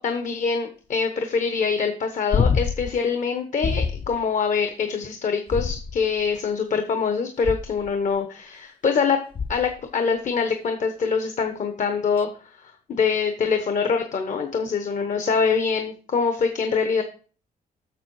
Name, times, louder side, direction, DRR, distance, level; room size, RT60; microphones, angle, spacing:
voice 1, 0.0-9.2 9.5-12.3 12.6-17.0, left 5 dB, 50° left, 6 dB, 1.0 m, -24 dB
sound 1, 2.3-3.0 3.6-4.2 5.5-6.2 7.4-7.9 9.4-9.8 12.2-12.3, left 5 dB, 35° left, 0.5 m, -25 dB
7.3 x 6.5 x 4.7 m, 0.39 s
cardioid pair, 120°, 16 cm